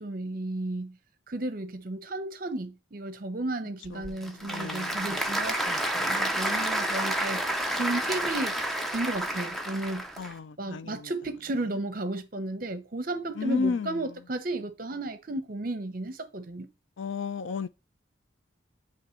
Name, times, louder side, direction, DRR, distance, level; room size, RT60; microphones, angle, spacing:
voice 1, 0.0-1.0 1.3-8.5 8.9-10.1 10.6-16.7, right 2 dB, 45° right, 0.8 m, -34 dB
voice 2, 3.9-5.3 10.2-11.1 13.4-14.0 17.0-17.7, left 4 dB, 80° left, 0.5 m, -33 dB
Applause / Crowd, 3.9-10.3, right 1 dB, ahead, 0.5 m, -30 dB
8.8 x 3.0 x 4.4 m
head